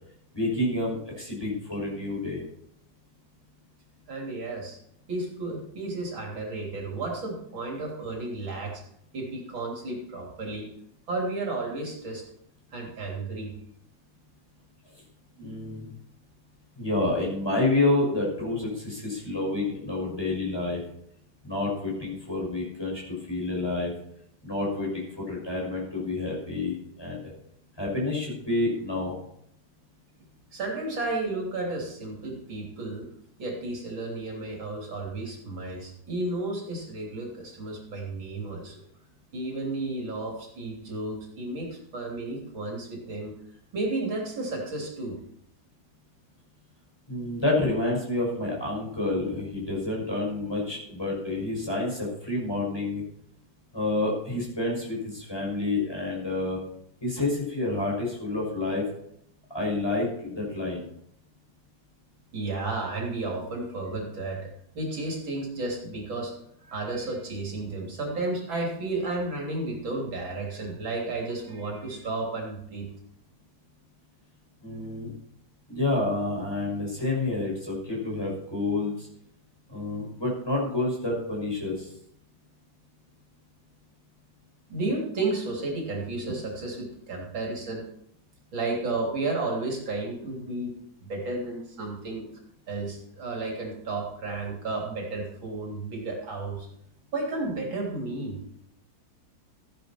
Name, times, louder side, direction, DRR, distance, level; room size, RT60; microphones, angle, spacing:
voice 1, 0.3-2.4 15.4-15.9 16.8-20.8 21.4-23.9 24.4-27.3 27.8-29.1 47.1-53.0 53.7-56.6 57.0-58.8 59.5-60.9 74.6-75.1 75.7-79.1 79.7-81.9, left 2 dB, 10° left, -3 dB, 6.2 m, -29 dB
voice 2, 4.1-4.8 5.1-8.8 9.1-10.7 11.1-12.2 12.7-13.5 30.5-33.0 33.4-38.8 39.3-43.3 43.7-45.2 62.3-64.4 64.8-66.3 66.6-72.9 84.7-87.8 88.5-90.7 91.1-92.3 92.7-96.7 97.1-98.4, right 2 dB, 80° right, -1 dB, 4.0 m, -32 dB
15.0 x 10.5 x 4.5 m, 0.71 s
omnidirectional pair, 2.1 m